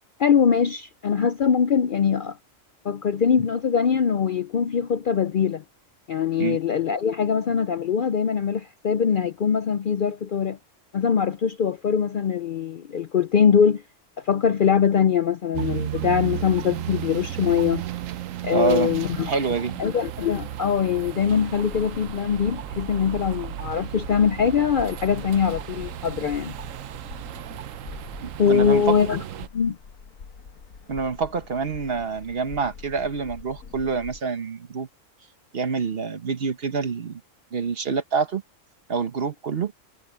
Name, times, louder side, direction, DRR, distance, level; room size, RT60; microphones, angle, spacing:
voice 1, 0.2-2.4 2.8-5.6 6.1-10.6 10.9-13.8 14.2-17.8 18.4-19.3 19.8-26.5 28.4-29.2 29.5-29.8, left 7 dB, 55° left, 0.6 m, -22 dB
sound 1, 15.5-29.5, right 12 dB, 75° right, 1.1 m, -34 dB
voice 2, 18.5-18.9 19.2-19.8 28.2-29.0 30.9-34.9 35.5-37.2 37.5-38.4 38.9-39.7, right 5 dB, 50° right, 1.2 m, -26 dB
sound 2, 21.5-34.2, left 5 dB, 85° left, 1.7 m, -44 dB
omnidirectional pair, 1.4 m